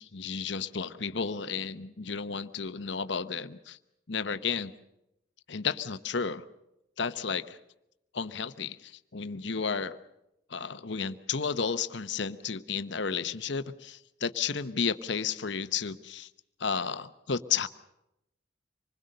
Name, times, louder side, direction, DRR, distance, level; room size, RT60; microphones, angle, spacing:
voice 1, 0.0-3.8 4.1-4.7 5.5-6.4 7.0-7.6 8.1-10.0 10.5-16.3 16.6-17.7, left 6 dB, 70° left, 12 dB, 0.9 m, -32 dB
26.0 x 20.5 x 6.6 m, 0.86 s
head